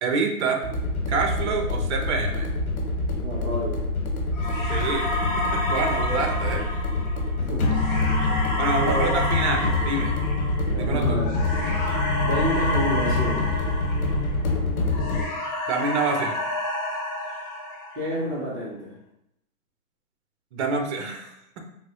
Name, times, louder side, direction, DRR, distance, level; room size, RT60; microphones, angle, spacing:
voice 1, 0.0-0.6 1.1-2.5 4.7-6.7 8.6-10.2 10.7-11.2 15.7-16.4 20.5-21.3, right 4 dB, 50° right, 4 dB, 0.7 m, -27 dB
sound 1, 0.6-15.2, left 2 dB, 80° left, 1.1 m, -26 dB
voice 2, 3.2-3.9 6.2-6.3 7.3-7.7 8.8-9.1 10.7-11.8 12.2-13.6 17.9-18.9, equal, 20° right, -5 dB, 0.4 m, -29 dB
sound 2, 4.4-14.6 14.9-18.3, left 1 dB, 40° left, 0.8 m, -30 dB
3.9 x 2.1 x 2.7 m, 0.79 s
hypercardioid pair, 140°, 42 cm